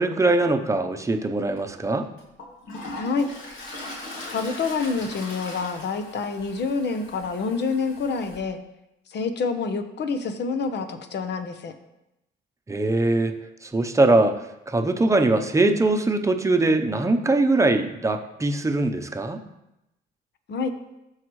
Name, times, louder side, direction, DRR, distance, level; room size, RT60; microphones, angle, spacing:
voice 1, 0.0-2.1 12.7-19.4, right 2 dB, 15° right, 5 dB, 0.8 m, -22 dB
Toilet flush, 1.5-1.6 2.2-8.4, left 2 dB, 80° left, 2.2 m, -39 dB
voice 2, 2.9-3.3 4.3-8.6 9.1-11.7 20.5-20.7, left 4 dB, 60° left, 7 dB, 1.0 m, -27 dB
14.0 x 4.8 x 3.2 m, 0.90 s
cardioid pair, 90°, 20 cm